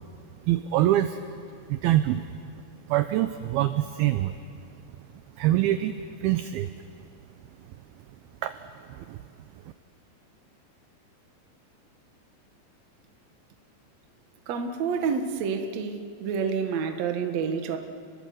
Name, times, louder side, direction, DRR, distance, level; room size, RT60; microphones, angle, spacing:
voice 1, 0.5-1.2 1.7-2.3 2.9-4.4 5.4-6.7 8.4-8.6 8.9-9.2, right 13 dB, 85° right, 10 dB, 2.2 m, -25 dB
voice 2, 14.5-17.8, right 6 dB, 65° right, 6 dB, 1.8 m, -28 dB
29.5 x 22.5 x 7.8 m, 2.4 s
omnidirectional pair, 5.2 m